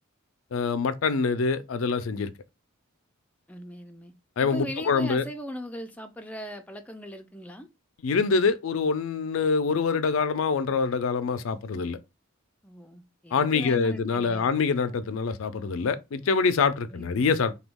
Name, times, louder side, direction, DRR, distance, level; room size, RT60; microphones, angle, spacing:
voice 1, 0.5-2.3 4.4-5.2 8.0-12.0 13.3-17.6, left 5 dB, 75° left, 0.4 m, -25 dB
voice 2, 3.5-4.1 4.4-7.7 12.6-14.5 16.9-17.4, equal, 5° left, 0.4 m, -39 dB
3.0 x 2.3 x 3.4 m
head